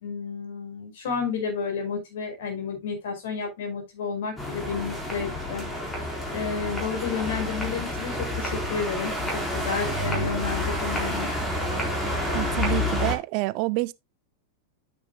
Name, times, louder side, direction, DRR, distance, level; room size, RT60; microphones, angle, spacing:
voice 1, 0.0-5.6 6.3-11.3, left 5 dB, 55° left, 5.0 m, -31 dB
sound 1, 4.4-13.1, left 1 dB, 10° left, 4.3 m, -29 dB
voice 2, 12.3-13.9, right 21 dB, 45° right, 0.5 m, -27 dB
9.6 x 9.4 x 2.3 m
figure-of-eight pair, 90°, 0 cm